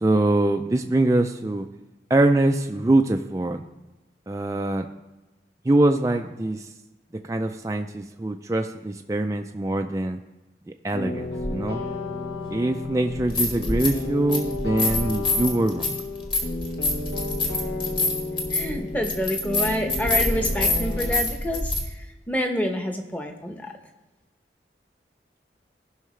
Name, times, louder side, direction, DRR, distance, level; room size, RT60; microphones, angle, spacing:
voice 1, 0.0-1.7 2.1-3.6 4.3-4.9 5.7-6.6 7.3-10.2 10.8-11.8 12.5-16.0, right 2 dB, 20° right, 4 dB, 0.3 m, -23 dB
sound 1, 10.9-21.2, left 2 dB, 70° left, 1.3 m, -33 dB
sound 2, 11.4-11.5 13.1-14.0 14.3-21.8, left 2 dB, 30° left, 1.4 m, -26 dB
voice 2, 18.5-23.7, equal, 10° left, 4 dB, 0.9 m, -28 dB
16.0 x 5.6 x 3.2 m, 1.1 s
head